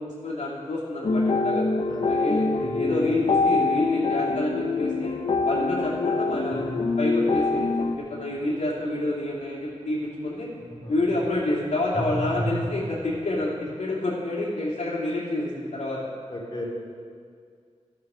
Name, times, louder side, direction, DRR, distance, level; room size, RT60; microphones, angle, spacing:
voice 1, 0.0-1.6 2.1-5.2 5.4-7.7 8.0-10.5 10.9-16.0, left 2 dB, 85° left, -7 dB, 2.8 m, -28 dB
sound 1, 1.0-8.0, left 3 dB, 60° left, 0.6 m, -24 dB
sound 2, 2.6-4.3 6.5-10.3 10.6-13.6, right 1 dB, 25° right, 3.0 m, -37 dB
voice 2, 16.3-16.7, left 1 dB, 35° left, -5 dB, 3.0 m, -37 dB
12.5 x 6.9 x 6.2 m, 2.1 s
wide cardioid pair, 75°, 12 cm